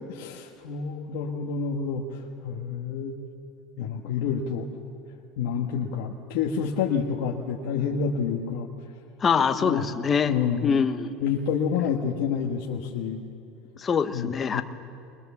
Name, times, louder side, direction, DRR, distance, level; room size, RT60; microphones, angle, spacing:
voice 1, 0.1-3.1 3.8-4.7 5.4-8.7 9.4-9.9 10.3-10.8 11.2-13.2 14.1-14.6, left 6 dB, 75° left, -1 dB, 1.5 m, -28 dB
voice 2, 9.2-10.3 10.6-11.1 13.8-14.6, left 6 dB, 30° left, 7 dB, 0.9 m, -24 dB
21.5 x 21.0 x 7.1 m, 2.6 s
supercardioid pair, 105°, 0 cm